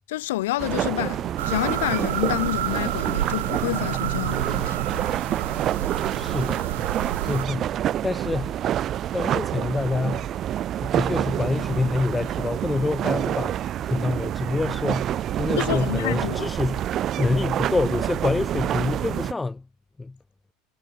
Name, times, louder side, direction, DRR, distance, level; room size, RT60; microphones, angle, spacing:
voice 1, 0.1-4.8 15.5-16.5, left 17 dB, 70° left, 0.8 m, -28 dB
sound 1, 0.6-19.3, right 11 dB, 40° right, 1.4 m, -27 dB
sound 2, 1.4-7.5, right 13 dB, 70° right, 1.5 m, -30 dB
voice 2, 6.0-6.7 7.2-8.6 9.1-10.4 10.8-19.7 20.0-20.2, left 3 dB, 15° left, 0.7 m, -27 dB
figure-of-eight pair, 75°, 0 cm